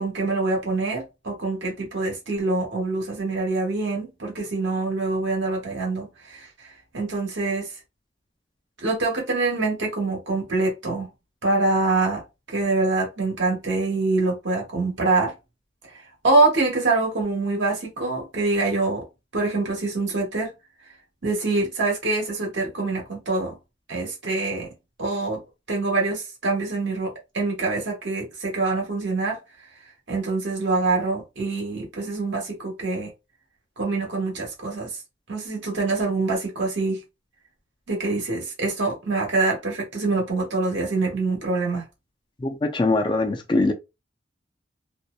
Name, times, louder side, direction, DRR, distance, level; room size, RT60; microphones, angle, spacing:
voice 1, 0.0-7.7 8.8-11.1 11.4-12.2 12.5-15.3 16.2-19.0 19.3-20.5 21.2-23.6 23.9-24.7 25.0-25.4 25.7-29.4 30.1-33.1 33.8-34.9 35.3-37.0 37.9-41.9, right 3 dB, 80° right, 1.1 m, -25 dB
voice 2, 42.4-43.7, left 2 dB, 25° left, 0.3 m, -22 dB
2.6 x 2.0 x 2.3 m
head